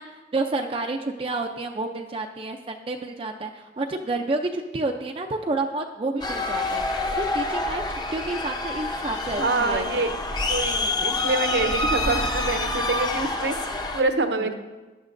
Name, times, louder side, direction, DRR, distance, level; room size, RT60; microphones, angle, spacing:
voice 1, 0.0-6.8 7.2-10.0, right 2 dB, 30° right, 3 dB, 0.4 m, -29 dB
sound 1, 6.2-14.0, left 2 dB, 25° left, 0.8 m, -27 dB
voice 2, 9.4-10.1 10.5-14.5, right 3 dB, 70° right, 7 dB, 0.8 m, -26 dB
14.5 x 10.5 x 2.6 m, 1.2 s
head